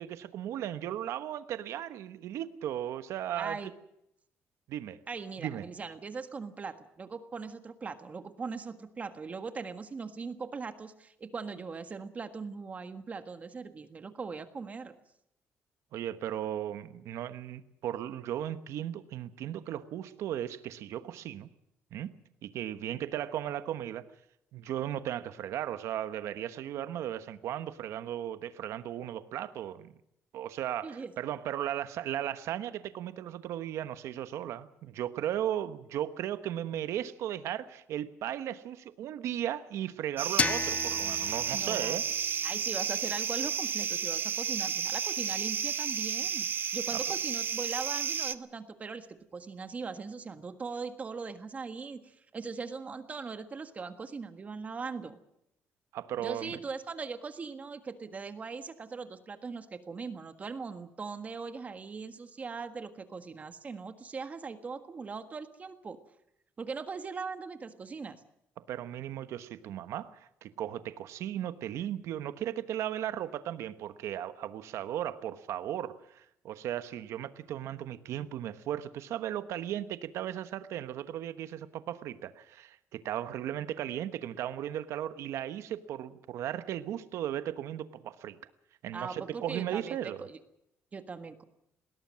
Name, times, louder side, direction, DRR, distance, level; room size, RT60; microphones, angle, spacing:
voice 1, 0.0-3.6 4.7-5.0 5.4-5.7 15.9-21.5 21.9-22.1 22.4-24.0 24.5-29.9 30.3-42.0 46.9-47.0 55.9-56.6 68.7-88.4 88.8-90.3, right 11 dB, 80° right, 12 dB, 1.2 m, -36 dB
voice 2, 3.4-3.7 5.1-14.9 30.8-31.1 41.5-42.0 42.4-46.5 46.7-55.2 56.2-66.0 66.6-68.2 88.9-90.4 90.9-91.4, right 4 dB, 30° right, 9 dB, 1.6 m, -40 dB
sound 1, 40.2-48.3, right 7 dB, 45° right, 0.9 m, -32 dB
sound 2, 40.4-43.2, left 5 dB, 30° left, 0.7 m, -35 dB
21.0 x 17.5 x 7.6 m, 0.78 s
cardioid pair, 135°, 5 cm